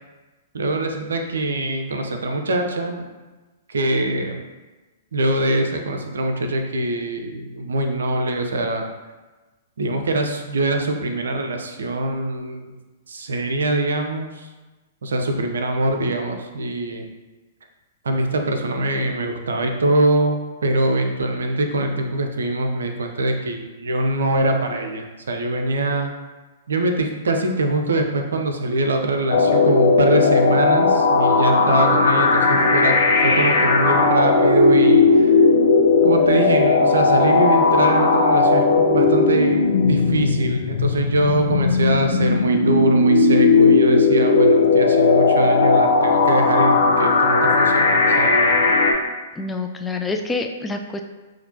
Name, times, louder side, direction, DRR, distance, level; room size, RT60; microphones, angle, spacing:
voice 1, 0.5-3.1 3.7-4.4 5.1-8.8 9.8-12.7 13.1-14.5 15.0-17.1 18.0-26.1 26.7-32.9 33.2-35.3 36.0-39.6 39.9-48.3, right 2 dB, 75° right, 4 dB, 0.5 m, -23 dB
sound 1, 29.3-48.9, left 3 dB, 60° left, 0.6 m, -16 dB
voice 2, 49.4-51.0, left 3 dB, 10° left, 4 dB, 0.3 m, -27 dB
5.8 x 2.5 x 2.7 m, 1.2 s
figure-of-eight pair, 115°, 0 cm